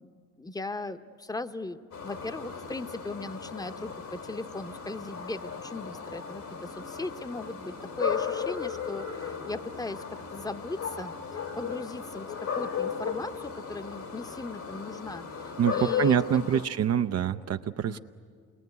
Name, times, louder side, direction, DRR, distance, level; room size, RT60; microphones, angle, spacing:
voice 1, 0.0-16.6 17.9-18.0, left 2 dB, 10° left, 10 dB, 0.9 m, -38 dB
sound 1, 1.9-16.7, left 7 dB, 75° left, 2.7 m, -35 dB
voice 2, 15.6-18.0, right 9 dB, 55° right, 8 dB, 0.6 m, -26 dB
28.0 x 21.0 x 9.4 m, 2.2 s
cardioid pair, 90°, 30 cm